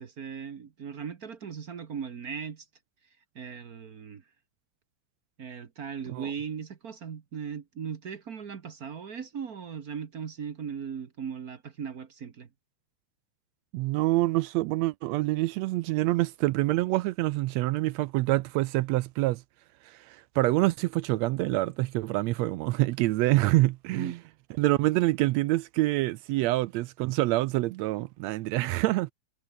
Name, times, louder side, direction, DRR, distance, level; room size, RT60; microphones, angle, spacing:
voice 1, 0.0-2.7 3.3-4.2 5.4-12.5 23.9-24.2, right 7 dB, 50° right, 1.0 m, -38 dB
voice 2, 13.7-19.4 19.8-24.2 24.6-29.1, right 18 dB, 80° right, 1.6 m, -26 dB
omnidirectional pair, 3.5 m